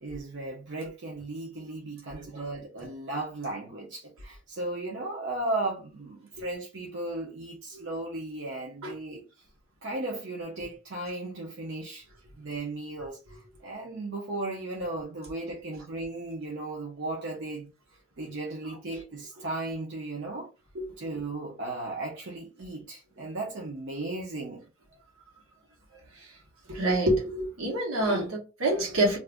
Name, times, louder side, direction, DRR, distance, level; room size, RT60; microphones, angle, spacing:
voice 1, 0.0-9.2 9.8-12.1 12.4-17.7 18.2-20.5 21.0-24.6, right 2 dB, 55° right, 0.7 m, -36 dB
voice 2, 26.7-29.2, right 1 dB, 75° right, 1.2 m, -26 dB
2.6 x 2.5 x 3.4 m
head